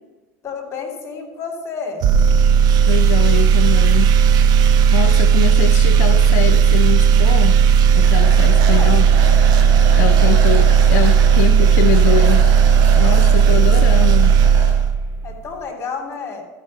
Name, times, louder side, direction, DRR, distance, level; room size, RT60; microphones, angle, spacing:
voice 1, 0.4-2.0 8.6-9.0 15.2-16.4, left 5 dB, 30° left, 1 dB, 2.8 m, -30 dB
sound 1, 2.0-15.4, right 7 dB, 55° right, 0.6 m, -13 dB
voice 2, 2.8-4.1 4.6-7.6 7.9-9.1 10.0-12.4 13.0-14.4, left 12 dB, 75° left, 11 dB, 0.4 m, -23 dB
sound 2, 8.0-14.7, right 3 dB, 70° right, 2.3 m, -30 dB
12.5 x 5.2 x 5.4 m, 1.2 s
hypercardioid pair, 90°, 9 cm